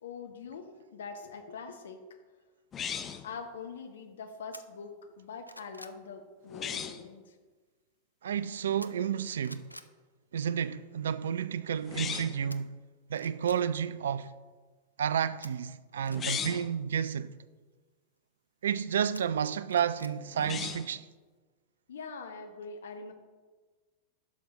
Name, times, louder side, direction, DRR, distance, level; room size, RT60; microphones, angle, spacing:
voice 1, 0.0-2.2 3.2-7.4 21.9-23.1, left 5 dB, 65° left, 0.7 m, -43 dB
sound 1, 2.7-3.3 6.5-7.0 11.8-12.5 16.1-16.7 20.3-21.0, left 7 dB, 25° left, 0.6 m, -37 dB
sound 2, 4.5-4.6 5.1-6.0 8.8-9.2 9.4-9.9 12.5-12.6 13.1-13.6 15.4-16.4 19.1-20.2 20.5-20.6, equal, 90° left, 0.4 m, -49 dB
voice 2, 8.2-9.7 10.3-12.7 13.1-14.3 15.0-17.3 18.6-21.1, right 8 dB, 65° right, 0.4 m, -31 dB
11.0 x 6.3 x 4.0 m
figure-of-eight pair, 90°, 0 cm